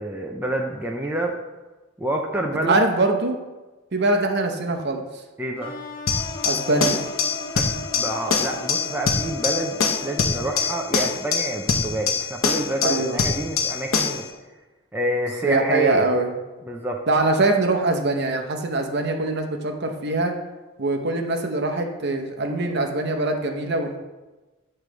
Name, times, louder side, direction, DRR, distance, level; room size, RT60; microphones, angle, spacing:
voice 1, 0.0-1.4 2.0-2.8 5.4-5.7 7.5-14.3 14.9-16.1 16.6-17.0, right 1 dB, 10° right, 0 dB, 0.5 m, -27 dB
voice 2, 2.6-3.4 3.9-5.0 6.4-7.1 12.8-13.2 15.4-16.3 17.1-20.4 20.8-24.0, right 2 dB, 55° right, 3 dB, 0.8 m, -23 dB
sound 1, 5.6-11.4, left 2 dB, 25° left, 1.3 m, -37 dB
sound 2, 6.1-14.3, left 5 dB, 80° left, 0.9 m, -24 dB
8.7 x 3.2 x 6.1 m, 1.2 s
head